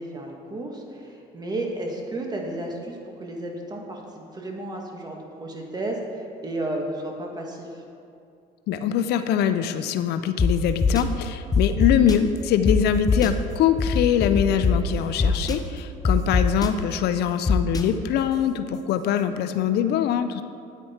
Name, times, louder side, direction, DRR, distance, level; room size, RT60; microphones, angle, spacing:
voice 1, 0.0-7.8 14.9-15.4 19.5-19.7, right 1 dB, 25° right, 1 dB, 1.6 m, -33 dB
voice 2, 8.7-20.4, left 9 dB, 75° left, 10 dB, 0.5 m, -23 dB
sound 1, 10.4-10.5 10.8-11.0 11.5-12.1 12.6-12.7 13.1-13.3 13.8-14.7 15.2-15.5 16.0-16.7 17.5-17.8, left 4 dB, 20° left, 0.7 m, -21 dB
9.2 x 9.1 x 4.3 m, 2.5 s
cardioid pair, 110°, 17 cm